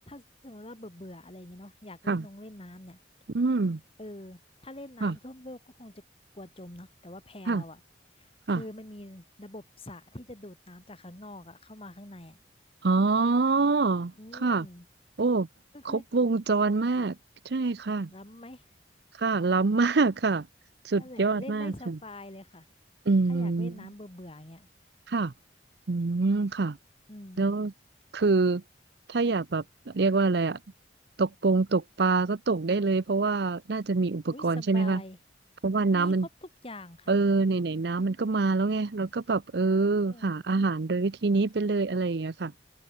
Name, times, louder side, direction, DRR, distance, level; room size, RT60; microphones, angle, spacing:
voice 1, 0.0-3.0 4.0-6.0 6.3-7.8 8.2-12.4 14.2-14.9 15.7-16.0 18.1-18.6 20.9-22.7 23.3-24.7 27.1-27.5 34.3-35.2 35.9-37.2 40.1-40.4, left 1 dB, 30° left, 2.7 m, -45 dB
voice 2, 3.3-3.8 5.0-5.2 7.5-7.6 8.5-8.6 12.8-14.7 15.2-15.5 15.8-17.2 17.4-18.1 19.2-20.5 20.8-22.0 23.1-23.7 25.1-25.3 25.9-26.8 27.4-27.7 28.1-28.6 29.1-30.6 31.2-35.0 35.6-36.3 37.1-42.5, right 3 dB, 60° right, 0.6 m, -25 dB
open air
head